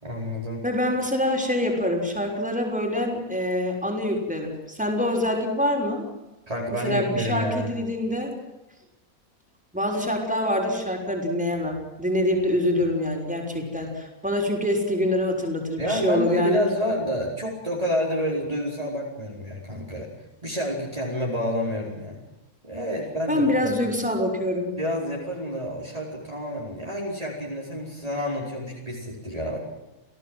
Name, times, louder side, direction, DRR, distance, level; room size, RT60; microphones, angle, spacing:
voice 1, 0.0-0.6 6.5-7.7 15.8-20.1 20.4-22.2 22.6-23.7 24.8-29.6, equal, 25° right, -3 dB, 4.8 m, -29 dB
voice 2, 0.6-6.1 6.7-8.3 9.7-16.6 23.3-24.7, left 1 dB, 5° right, 1 dB, 6.0 m, -25 dB
29.5 x 18.0 x 8.0 m, 1.0 s
omnidirectional pair, 1.5 m